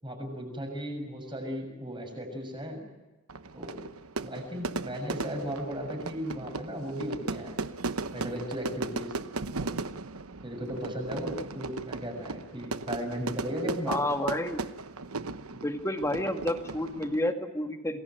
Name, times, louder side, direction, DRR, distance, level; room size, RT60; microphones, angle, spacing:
voice 1, 0.0-2.8 3.5-3.9 4.2-7.6 8.1-9.1 9.6-9.7 10.4-14.0, equal, 20° right, 4 dB, 6.9 m, -36 dB
Fire / Fireworks, 3.3-17.3, right 3 dB, 85° right, 1.1 m, -37 dB
voice 2, 13.9-14.6 15.6-18.0, left 1 dB, 15° left, 6 dB, 2.0 m, -30 dB
28.5 x 20.5 x 9.2 m, 1.2 s
head